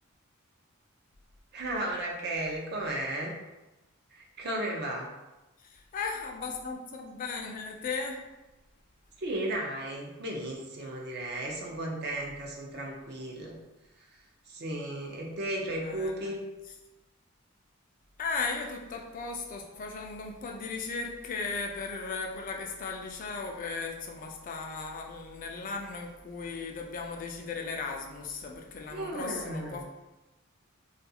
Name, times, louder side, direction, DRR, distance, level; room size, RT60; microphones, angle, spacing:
voice 1, 1.5-3.3 4.1-5.1 9.2-13.6 14.5-16.4 28.9-29.8, right 1 dB, 50° right, -1 dB, 0.5 m, -34 dB
voice 2, 5.6-8.2 15.8-16.3 18.2-29.8, left 4 dB, 40° left, 2 dB, 0.3 m, -36 dB
2.4 x 2.3 x 2.7 m, 1.0 s
head